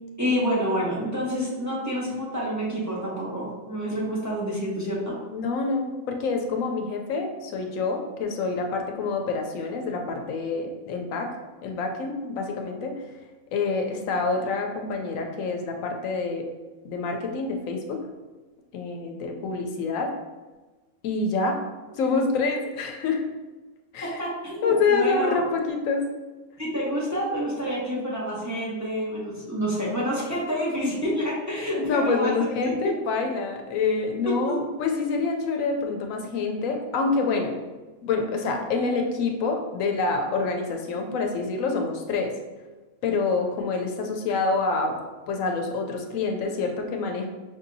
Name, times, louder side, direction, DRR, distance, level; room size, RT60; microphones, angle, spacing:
voice 1, 0.2-5.1 24.0-25.4 26.6-32.7 34.5-34.6, equal, 15° right, -6 dB, 0.7 m, -28 dB
voice 2, 5.3-11.3 11.6-12.9 13.5-16.5 16.8-18.1 18.7-20.1 21.0-21.6 22.0-23.2 23.9-24.2 24.6-26.1 31.7-37.6 38.0-42.3 43.0-45.0 45.3-47.3, left 4 dB, 85° left, 3 dB, 1.0 m, -27 dB
5.5 x 2.7 x 2.6 m, 1.2 s
omnidirectional pair, 1.4 m